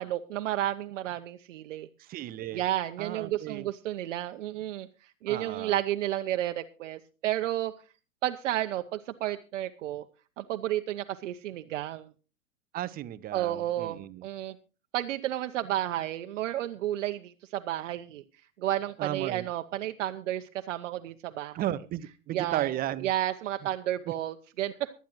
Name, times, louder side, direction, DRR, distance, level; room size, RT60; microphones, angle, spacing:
voice 1, 0.0-1.9 2.5-7.7 8.2-10.1 10.4-12.1 13.3-14.6 14.9-18.2 18.6-21.6 22.3-24.9, right 13 dB, 60° right, 7 dB, 0.8 m, -32 dB
voice 2, 2.0-2.6 3.0-3.7 5.3-5.8 12.7-14.3 19.0-19.5 21.5-23.1 24.1-24.2, right 13 dB, 20° right, 16 dB, 0.6 m, -34 dB
23.0 x 9.3 x 3.0 m, 0.33 s
figure-of-eight pair, 95°, 41 cm